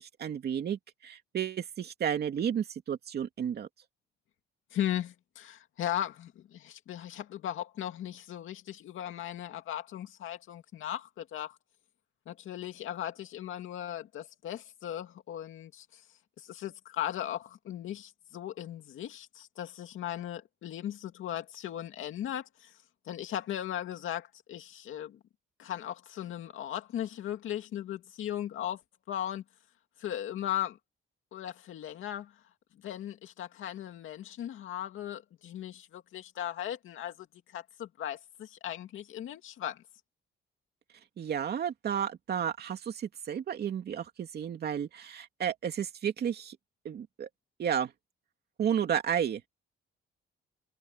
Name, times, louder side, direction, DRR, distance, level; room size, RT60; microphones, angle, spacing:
voice 1, 0.0-3.7 41.2-46.6 46.8-47.3 47.6-47.9 48.6-49.5, right 8 dB, 50° right, 2.6 m, -32 dB
voice 2, 4.7-11.6 12.3-16.0 16.4-22.7 23.1-25.2 25.6-28.8 29.1-29.4 30.0-30.8 31.3-32.3 32.8-39.8, left 11 dB, 75° left, 2.3 m, -37 dB
cardioid pair, 165°, 21 cm